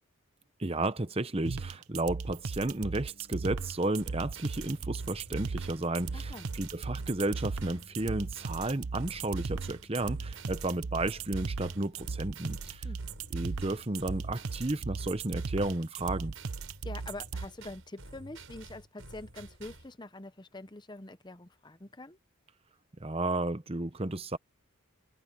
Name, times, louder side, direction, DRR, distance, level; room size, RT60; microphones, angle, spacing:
voice 1, 0.6-12.9 13.3-16.3 23.0-24.4, right 2 dB, 25° right, 0.8 m, -33 dB
sound 1, 1.5-17.5, right 4 dB, 85° right, 0.8 m, -37 dB
sound 2, 2.3-15.1, equal, 55° left, 2.7 m, -58 dB
sound 3, 4.0-19.9, right 2 dB, 65° right, 6.5 m, -50 dB
voice 2, 6.1-6.5 12.8-13.0 16.8-22.2, left 2 dB, 20° left, 0.8 m, -45 dB
head